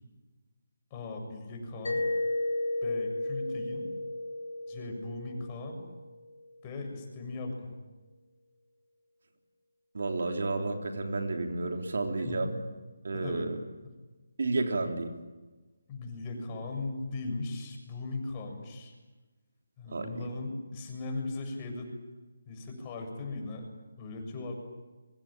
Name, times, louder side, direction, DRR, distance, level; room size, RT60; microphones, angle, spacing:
voice 1, 0.9-2.1 2.8-3.9 4.7-5.8 6.6-7.7 12.2-12.4 13.1-13.5 15.9-18.9 19.8-21.9 22.5-23.6 24.0-24.6, left 3 dB, 25° left, 3 dB, 7.2 m, -38 dB
Mallet percussion, 1.8-6.5, left 2 dB, 70° left, 6.6 m, -34 dB
voice 2, 9.9-12.6 13.0-13.6 14.4-15.1 19.9-20.1, right 3 dB, 65° right, 4 dB, 3.6 m, -31 dB
25.0 x 24.5 x 9.0 m, 1.2 s
figure-of-eight pair, 155°, 0 cm